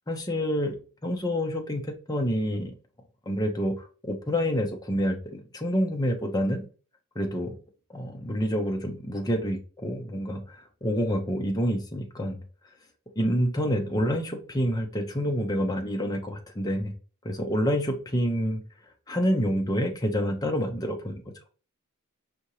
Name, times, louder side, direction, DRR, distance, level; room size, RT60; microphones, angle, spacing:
voice 1, 0.1-0.7 1.0-2.7 3.3-6.7 7.2-7.6 7.9-12.4 13.2-16.9 17.2-18.6 19.1-21.3, equal, 15° left, 3 dB, 0.6 m, -28 dB
5.1 x 2.8 x 3.0 m, 0.37 s
head